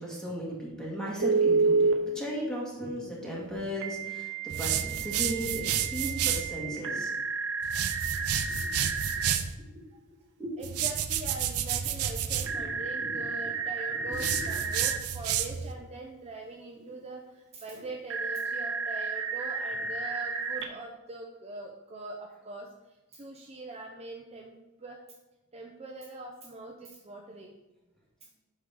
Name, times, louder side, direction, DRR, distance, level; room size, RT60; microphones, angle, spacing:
voice 1, 0.0-7.1 8.6-8.7 10.4-10.5 12.4-13.2 13.4-13.5 13.9-14.5, equal, 5° left, -5 dB, 2.0 m, -36 dB
Telephone, 1.2-2.0 3.8-9.3 12.4-15.0 18.1-20.6, right 4 dB, 60° right, 0.8 m, -31 dB
sound 1, 4.5-6.5 7.6-9.5 10.6-12.5 14.1-15.7, right 9 dB, 90° right, 0.5 m, -30 dB
voice 2, 10.6-25.0 25.5-27.5, right 2 dB, 30° right, 0 dB, 0.6 m, -42 dB
7.9 x 5.4 x 3.7 m, 1.0 s
head